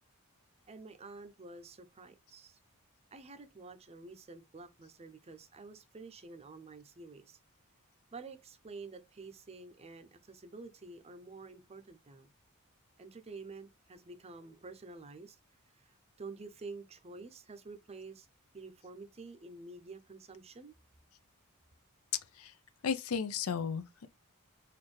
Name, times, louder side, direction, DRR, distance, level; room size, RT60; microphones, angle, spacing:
voice 1, 0.7-2.6 3.1-7.4 8.1-12.3 13.0-15.4 15.7-18.3 18.5-20.7, right 3 dB, 30° right, 0.5 m, -49 dB
voice 2, 22.8-24.1, left 6 dB, 75° left, 0.5 m, -34 dB
4.2 x 2.6 x 3.1 m
head